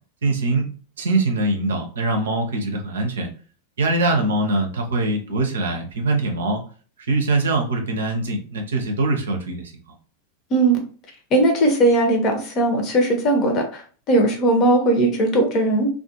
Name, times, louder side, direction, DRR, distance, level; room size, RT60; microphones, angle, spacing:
voice 1, 0.2-0.7 1.0-3.3 3.8-6.6 7.1-9.7, right 2 dB, 65° right, 3 dB, 0.6 m, -22 dB
voice 2, 11.3-13.8 14.1-15.9, right 1 dB, 35° left, 3 dB, 0.8 m, -18 dB
2.4 x 2.3 x 2.8 m, 0.40 s
figure-of-eight pair, 90°, 0 cm